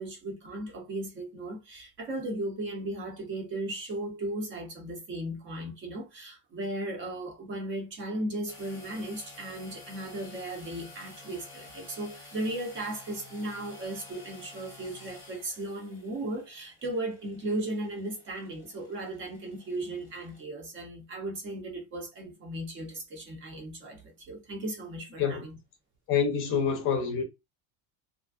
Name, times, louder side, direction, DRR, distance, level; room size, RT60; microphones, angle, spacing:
voice 1, 0.0-25.5, right 1 dB, 30° right, 0.6 m, -36 dB
sound 1, 8.5-20.4, left 2 dB, 5° left, 0.9 m, -51 dB
voice 2, 26.1-27.2, left 7 dB, 30° left, 0.6 m, -26 dB
2.5 x 2.1 x 2.3 m
cardioid pair, 175°, 42 cm